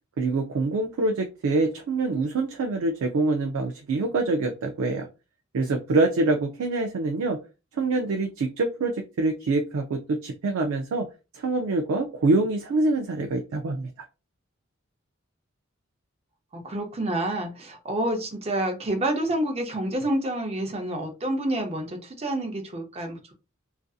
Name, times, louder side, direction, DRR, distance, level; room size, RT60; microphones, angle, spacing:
voice 1, 0.2-5.1 5.5-7.4 7.7-11.1 11.3-13.9, right 3 dB, 80° right, 4 dB, 0.4 m, -25 dB
voice 2, 16.5-23.3, right 1 dB, 30° right, 3 dB, 0.5 m, -28 dB
2.5 x 2.4 x 2.3 m, 0.30 s
head